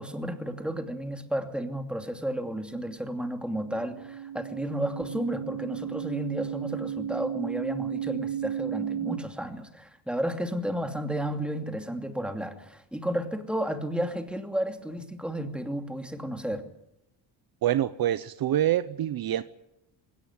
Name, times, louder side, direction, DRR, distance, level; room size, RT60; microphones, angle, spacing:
voice 1, 0.0-16.6, right 1 dB, ahead, 5 dB, 2.7 m, -32 dB
sound 1, 3.4-9.2, right 10 dB, 70° right, 2.7 m, -34 dB
voice 2, 17.6-19.4, right 12 dB, 55° right, 14 dB, 0.8 m, -26 dB
20.0 x 18.0 x 9.6 m, 0.84 s
cardioid pair, 115°, 43 cm